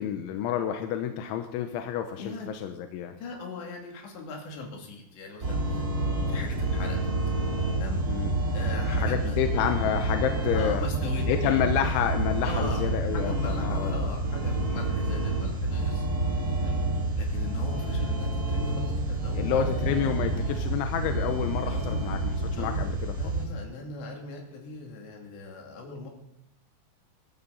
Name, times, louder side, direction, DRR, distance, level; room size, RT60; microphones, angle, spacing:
voice 1, 0.0-3.1 8.1-8.3 9.0-10.9 11.3-13.9 19.3-23.1, left 9 dB, 90° left, 6 dB, 3.3 m, -29 dB
voice 2, 2.2-2.5 3.1-5.8 6.3-7.0 7.8-8.0 8.5-9.7 10.5-11.6 12.4-12.8 13.1-16.1 16.6-16.8 17.2-19.6 21.6-22.1 22.6-26.1, left 3 dB, 70° left, 1 dB, 4.8 m, -39 dB
sound 1, 5.4-23.5, right 2 dB, 25° right, 2.1 m, -28 dB
22.5 x 13.0 x 4.1 m, 0.74 s
omnidirectional pair, 5.4 m